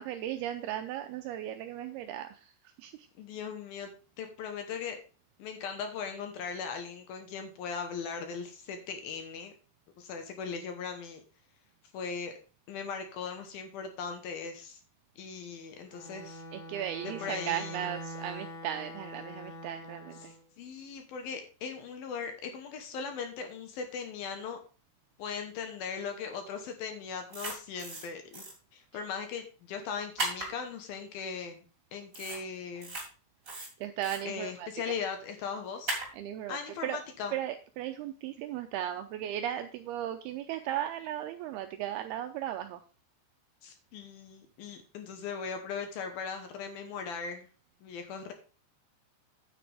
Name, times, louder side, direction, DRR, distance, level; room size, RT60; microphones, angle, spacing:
voice 1, 0.0-3.1 16.5-20.3 33.8-34.9 36.1-37.0 37.3-42.8, right 11 dB, 80° right, 7 dB, 2.3 m, -36 dB
voice 2, 3.2-3.9 4.2-5.0 5.4-9.5 10.0-11.2 11.9-12.3 12.7-14.8 15.2-16.4 17.0-17.9 20.2-24.6 25.2-28.4 28.7-31.6 31.9-33.0 34.2-35.9 36.5-37.3 43.6-47.5 47.8-48.3, left 6 dB, 70° left, 6 dB, 2.6 m, -39 dB
Bowed string instrument, 15.9-20.4, equal, 25° left, 2.9 m, -44 dB
sound 1, 27.3-28.1 28.3-28.5 30.2-30.5 32.1-32.4 32.8-33.0 33.4-34.2 35.9-36.1, right 2 dB, 20° right, 2.9 m, -35 dB
9.4 x 9.1 x 3.4 m, 0.35 s
omnidirectional pair, 5.0 m